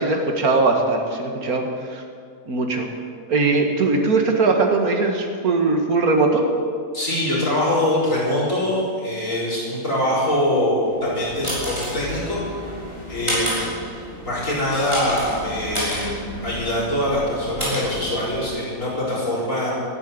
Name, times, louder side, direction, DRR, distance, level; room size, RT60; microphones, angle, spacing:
voice 1, 0.0-2.0 2.5-2.9 3.3-6.5, right 3 dB, 85° right, 3 dB, 2.3 m, -20 dB
voice 2, 6.9-12.6 13.1-13.5 14.2-16.1 16.4-19.7, left 1 dB, 60° left, -7 dB, 6.1 m, -23 dB
sound 1, 10.9-18.7, equal, 20° right, 5.2 m, -30 dB
12.5 x 11.0 x 9.6 m, 2.2 s
omnidirectional pair, 1.5 m